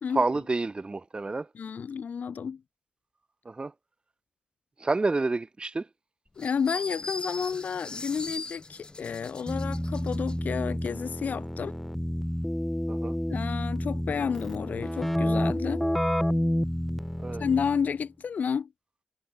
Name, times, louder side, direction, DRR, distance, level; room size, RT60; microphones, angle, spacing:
voice 1, 0.1-1.5 3.4-3.7 4.8-5.9 12.9-13.1 17.2-17.4, right 3 dB, 35° right, 1.1 m, -28 dB
voice 2, 1.5-2.6 6.4-11.8 13.3-15.8 17.4-18.7, left 6 dB, 80° left, 0.8 m, -31 dB
sound 1, 6.4-10.4, left 2 dB, 35° left, 2.4 m, -39 dB
Keyboard (musical), 9.5-17.9, equal, 5° left, 0.6 m, -29 dB
cardioid pair, 60°, 3 cm